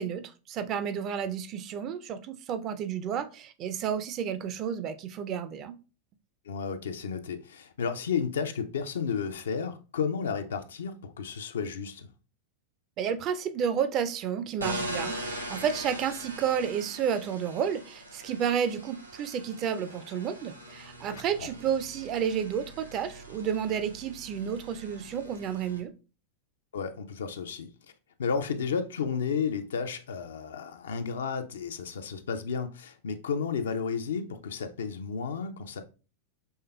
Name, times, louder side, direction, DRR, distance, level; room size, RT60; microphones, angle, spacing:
voice 1, 0.0-5.8 13.0-25.9, right 8 dB, 35° right, 0.4 m, -31 dB
voice 2, 6.5-12.1 21.1-21.5 26.7-27.7 28.2-35.8, left 6 dB, 65° left, 0.4 m, -32 dB
sound 1, 14.6-25.8, right 1 dB, 85° right, 0.6 m, -41 dB
5.4 x 3.3 x 2.2 m
figure-of-eight pair, 90°, 0 cm